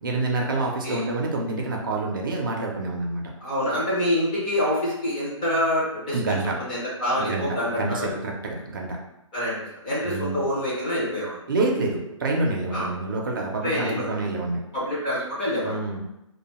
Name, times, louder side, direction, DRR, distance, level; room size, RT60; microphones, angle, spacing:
voice 1, 0.0-3.2 6.1-6.5 7.2-9.0 10.0-10.4 11.5-14.6 15.6-16.0, right 2 dB, 40° right, 0 dB, 0.4 m, -27 dB
voice 2, 3.4-8.1 9.3-11.4 12.7-12.9 13.6-14.1 14.7-15.8, left 1 dB, 15° left, -8 dB, 0.4 m, -26 dB
2.4 x 2.2 x 2.9 m, 0.89 s
hypercardioid pair, 170°, 17 cm